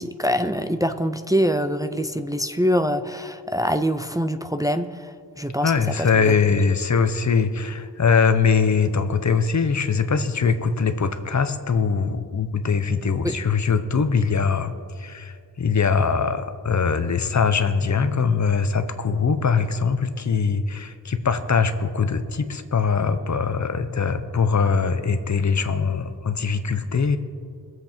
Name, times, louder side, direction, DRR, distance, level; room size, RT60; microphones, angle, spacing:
voice 1, 0.0-6.3 13.2-13.3, equal, 10° right, 9 dB, 0.4 m, -24 dB
voice 2, 5.6-27.2, left 5 dB, 40° left, 10 dB, 0.8 m, -22 dB
22.5 x 7.7 x 4.5 m, 2.1 s
wide cardioid pair, 145°, 42 cm